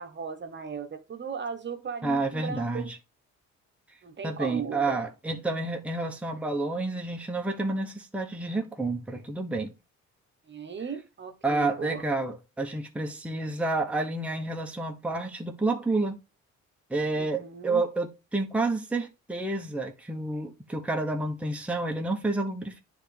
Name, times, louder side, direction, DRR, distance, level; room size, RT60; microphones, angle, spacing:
voice 1, 0.0-2.9 4.0-5.0 10.5-12.0 17.2-17.8, right 6 dB, 35° right, 1.1 m, -37 dB
voice 2, 2.0-3.0 4.2-9.7 11.4-16.2 16.9-22.8, right 2 dB, 5° right, 1.0 m, -29 dB
9.8 x 3.5 x 3.3 m
cardioid pair, 90°, 30 cm